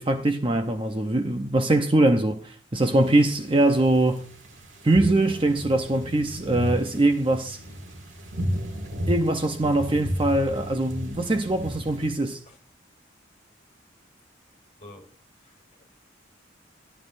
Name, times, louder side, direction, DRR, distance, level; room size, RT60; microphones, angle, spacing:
voice 1, 0.0-4.3 4.8-7.6 9.1-12.4, right 2 dB, 25° right, 0.7 m, -22 dB
sound 1, 2.8-12.1, equal, 85° right, 2.2 m, -34 dB
voice 2, 14.8-15.1 15.4-15.8, left 1 dB, 35° left, 3.1 m, -48 dB
15.0 x 12.0 x 2.5 m
head